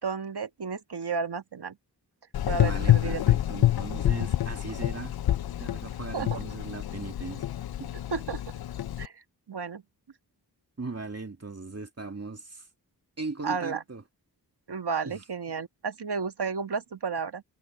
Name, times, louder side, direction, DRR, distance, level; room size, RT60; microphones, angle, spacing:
voice 1, 0.0-1.7 2.5-3.2 6.1-6.4 8.1-8.4 9.0-9.8 13.4-13.8 14.7-17.4, right 5 dB, 70° right, 1.7 m, -32 dB
Gurgling / Engine, 2.3-9.1, left 13 dB, 65° left, 0.5 m, -27 dB
voice 2, 2.6-5.1 5.6-7.4 7.8-7.9 10.8-12.7 13.2-14.0 15.0-15.2, right 3 dB, 35° right, 2.3 m, -38 dB
wide cardioid pair, 65°, 41 cm